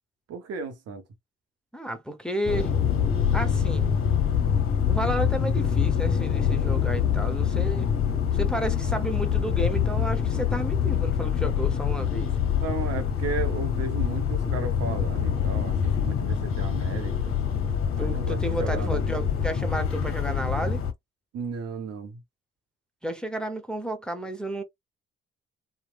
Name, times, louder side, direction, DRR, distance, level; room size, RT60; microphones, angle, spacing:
voice 1, 0.3-1.0 12.6-17.3 18.0-19.0 21.3-22.2, right 5 dB, 55° right, 0.7 m, -34 dB
voice 2, 1.7-2.7 3.3-3.9 4.9-7.9 8.3-12.3 18.0-20.8 23.0-24.6, right 1 dB, 5° left, 0.7 m, -32 dB
sound 1, 2.5-20.9, left 8 dB, 45° left, 0.7 m, -25 dB
2.9 x 2.0 x 2.3 m
hypercardioid pair, 45°, 30 cm